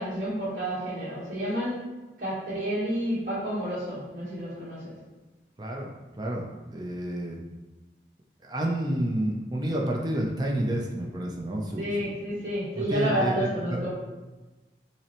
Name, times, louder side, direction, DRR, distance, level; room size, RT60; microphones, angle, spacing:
voice 1, 0.0-1.8 2.2-5.0 11.8-13.9, equal, 50° right, -11 dB, 1.2 m, -30 dB
voice 2, 5.6-5.9 6.2-7.4 8.4-12.1 12.8-13.5, right 1 dB, 25° right, 0 dB, 0.4 m, -29 dB
5.5 x 2.1 x 2.9 m, 1.2 s
head